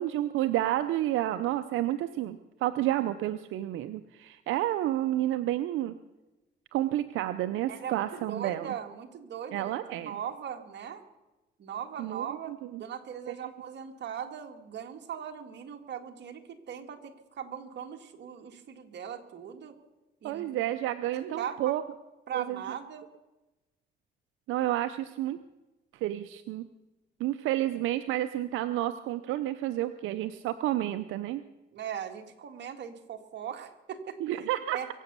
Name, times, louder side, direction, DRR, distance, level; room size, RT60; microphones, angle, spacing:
voice 1, 0.0-5.9 6.7-8.7 9.5-10.2 12.0-12.8 13.3-13.5 20.2-21.8 22.3-22.6 24.5-25.4 25.9-26.7 27.2-31.4 34.2-34.8, right 14 dB, 90° right, 11 dB, 0.6 m, -30 dB
voice 2, 7.7-11.0 11.6-12.5 12.8-19.8 20.2-20.6 21.1-21.8 22.3-23.1 31.7-34.2 34.7-34.9, right 8 dB, 60° right, 5 dB, 1.8 m, -39 dB
23.0 x 8.2 x 6.8 m, 1.1 s
cardioid pair, 90°, 20 cm